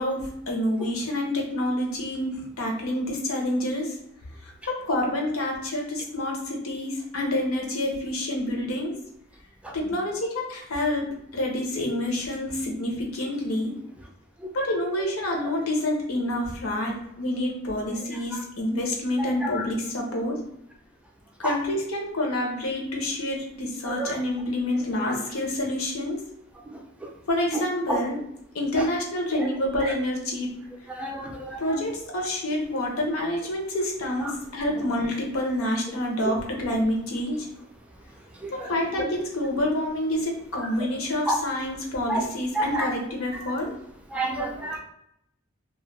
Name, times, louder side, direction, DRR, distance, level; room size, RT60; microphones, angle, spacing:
voice 1, 0.0-4.0 4.4-9.0 9.7-13.7 14.5-20.4 21.4-26.3 27.3-28.2 28.5-30.5 31.6-37.5 38.5-43.7, left 1 dB, 90° left, 0 dB, 0.7 m, -28 dB
voice 2, 31.0-31.6 36.2-36.3 38.4-38.7 41.3-41.4 42.1-42.2 42.6-42.9 44.1-44.8, right 1 dB, 5° right, 0 dB, 0.4 m, -29 dB
2.3 x 2.1 x 3.1 m, 0.75 s
head